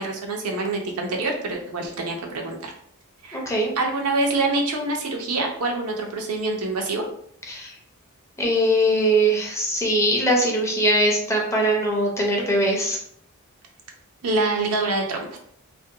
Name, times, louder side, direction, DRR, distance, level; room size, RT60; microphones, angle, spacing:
voice 1, 0.0-2.7 3.2-3.4 3.8-7.0 14.2-15.4, right 2 dB, 80° right, 1 dB, 0.6 m, -25 dB
voice 2, 3.3-3.7 7.5-7.7 8.4-13.0, right 1 dB, 15° left, -1 dB, 0.5 m, -21 dB
2.5 x 2.1 x 2.7 m, 0.68 s
head